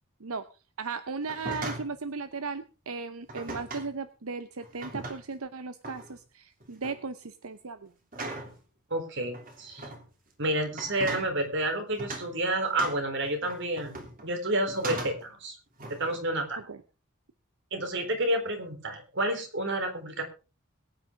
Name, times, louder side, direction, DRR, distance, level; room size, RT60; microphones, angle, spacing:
voice 1, 0.8-7.9 16.6-16.8, right 4 dB, 85° right, 12 dB, 0.8 m, -36 dB
sound 1, 1.2-2.0 3.3-3.9 4.6-5.4 5.8-6.1 6.6-7.0 8.1-8.6 9.3-10.0 10.7-11.3 12.0-12.3 12.8-14.3 14.7-15.3 15.8-16.2, right 2 dB, 40° right, 3.2 m, -39 dB
voice 2, 8.9-9.9 10.4-15.6 15.9-16.6 17.7-20.2, right 1 dB, 60° right, 5 dB, 3.8 m, -30 dB
21.5 x 9.5 x 3.7 m, 0.33 s
head